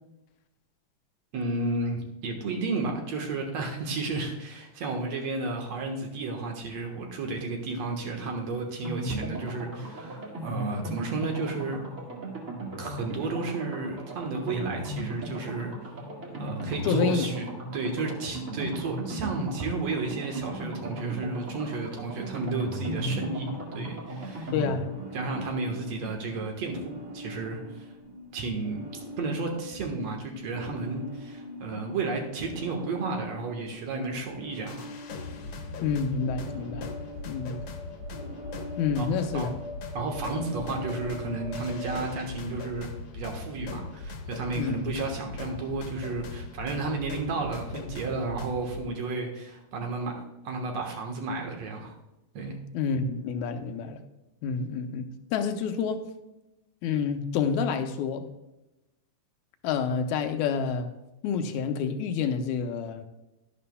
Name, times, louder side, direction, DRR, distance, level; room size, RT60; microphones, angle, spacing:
voice 1, 1.3-11.8 12.8-15.7 16.4-17.5 17.7-23.5 23.7-24.5 25.1-27.9 28.3-28.9 29.2-34.9 39.0-39.1 39.3-39.5 39.9-42.9 43.1-51.9 52.3-52.6, right 3 dB, 65° right, 2.4 m, -32 dB
sound 1, 8.8-27.5 27.7-27.8 28.1-28.2, right 1 dB, 30° right, 1.8 m, -37 dB
voice 2, 16.8-17.3 24.5-24.9 35.8-36.9 37.3-37.6 38.8-39.5 44.6-44.9 52.7-54.0 54.4-56.0 56.8-58.3 59.6-60.9 61.2-63.1, left 6 dB, 80° left, 2.1 m, -28 dB
sound 2, 22.8-42.0, left 1 dB, 80° right, 3.2 m, -43 dB
sound 3, 34.7-48.8, left 3 dB, 60° left, 1.9 m, -39 dB
11.5 x 11.0 x 2.2 m
omnidirectional pair, 3.4 m